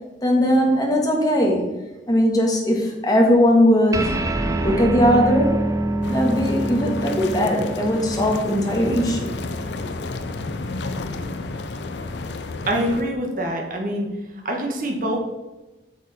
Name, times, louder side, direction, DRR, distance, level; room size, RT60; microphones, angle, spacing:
voice 1, 0.2-1.7 2.1-4.1 4.6-5.6 6.1-9.3, equal, 20° left, 0 dB, 1.6 m, -19 dB
sound 1, 3.9-10.7, right 1 dB, 20° right, 0.4 m, -26 dB
sound 2, 6.0-13.0, left 3 dB, 75° left, 0.6 m, -31 dB
voice 2, 12.6-14.1 14.4-15.2, equal, 50° right, 1 dB, 1.5 m, -25 dB
8.2 x 6.4 x 4.2 m, 1.1 s
head